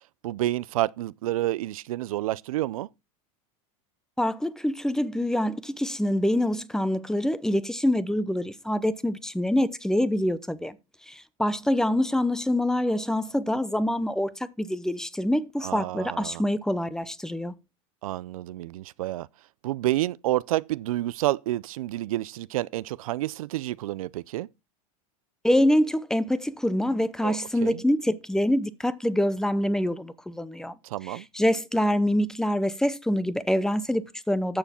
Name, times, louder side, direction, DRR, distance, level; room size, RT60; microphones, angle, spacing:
voice 1, 0.2-2.9 15.6-16.4 18.0-19.3 19.6-24.5 27.2-27.8 30.8-31.3, right 15 dB, 85° right, 0.5 m, -29 dB
voice 2, 4.2-10.8 11.1-17.5 25.4-30.7 31.1-34.6, left 1 dB, 5° left, 0.8 m, -25 dB
12.5 x 7.0 x 4.3 m
supercardioid pair, 125°, 18 cm